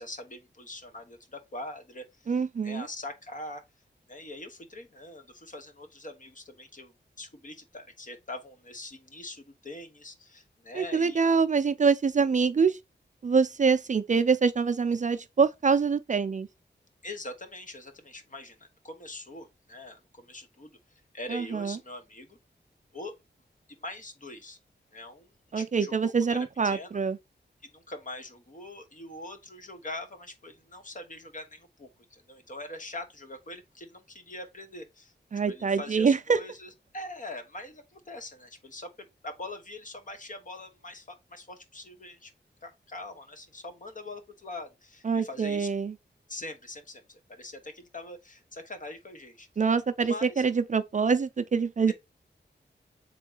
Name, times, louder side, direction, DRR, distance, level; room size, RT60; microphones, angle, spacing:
voice 1, 0.0-2.3 2.6-3.6 4.1-11.4 17.0-22.4 22.9-23.2 23.7-24.6 24.9-26.4 26.6-26.9 27.6-35.1 35.5-42.3 42.6-45.7 46.3-49.5 50.0-50.4 51.9-52.0, left 2 dB, 45° left, 1.1 m, -43 dB
voice 2, 2.3-2.9 10.7-12.8 13.2-16.5 21.3-21.8 25.5-27.2 35.3-36.4 45.0-45.9 49.6-51.9, right 5 dB, 40° right, 0.4 m, -25 dB
3.7 x 3.6 x 3.8 m
wide cardioid pair, 90°, 19 cm